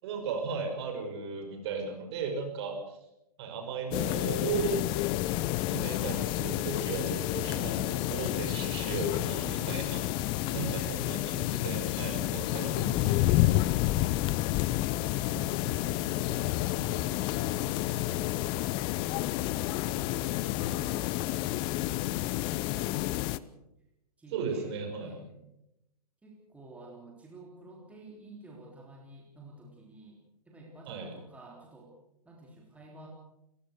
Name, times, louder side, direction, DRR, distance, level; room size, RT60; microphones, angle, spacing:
voice 1, 0.0-3.0 3.4-4.8 5.7-13.4 24.3-25.1 30.9-31.1, right 5 dB, 40° right, 4 dB, 5.9 m, -36 dB
sound 1, 3.9-23.4, left 16 dB, 25° left, 0.7 m, -30 dB
voice 2, 12.4-13.3 13.8-14.1 14.5-17.2 17.5-19.5 19.8-21.8 22.3-23.5 24.2-24.7 25.0-25.4 26.2-31.9 32.3-33.1, right 1 dB, 5° right, -1 dB, 3.5 m, -50 dB
29.5 x 15.0 x 6.5 m, 0.86 s
figure-of-eight pair, 120°, 20 cm